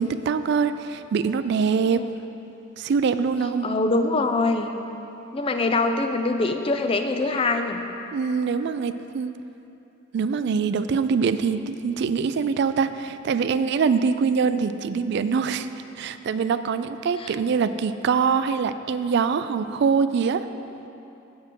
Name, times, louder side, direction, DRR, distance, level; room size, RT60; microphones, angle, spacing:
voice 1, 0.0-2.1 2.8-3.7 8.1-9.3 10.1-15.7 16.0-20.4, right 5 dB, 60° right, 12 dB, 0.3 m, -24 dB
voice 2, 3.6-4.7 5.3-7.8 17.2-17.3, left 3 dB, 30° left, 6 dB, 0.4 m, -24 dB
7.7 x 6.6 x 5.2 m, 2.9 s
head